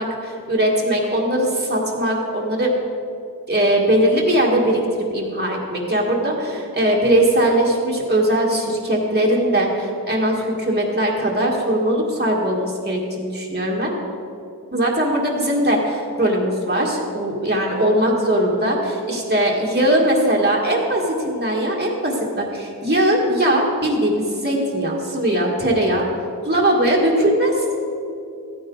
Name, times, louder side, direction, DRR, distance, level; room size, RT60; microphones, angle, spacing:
voice 1, 0.0-2.7 3.5-13.9 14.7-26.0 26.5-27.8, right 1 dB, 25° right, -3 dB, 1.9 m, -20 dB
14.0 x 9.7 x 3.9 m, 2.6 s
wide cardioid pair, 50°, 37 cm